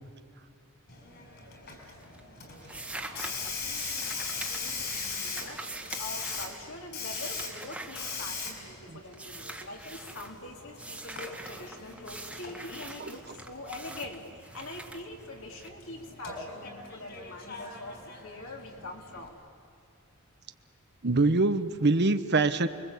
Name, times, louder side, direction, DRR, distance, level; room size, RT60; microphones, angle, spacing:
Hiss, 0.9-19.3, left 4 dB, 50° left, 5.5 m, -40 dB
sound 1, 1.3-1.8 2.0-8.8 9.1-10.3 10.8-15.7, right 2 dB, 5° right, 1.7 m, -44 dB
voice 1, 2.6-19.4, left 2 dB, 65° left, 1 dB, 3.6 m, -44 dB
voice 2, 21.0-22.7, right 3 dB, 50° right, 10 dB, 1.0 m, -24 dB
29.5 x 22.5 x 8.4 m, 2.5 s
head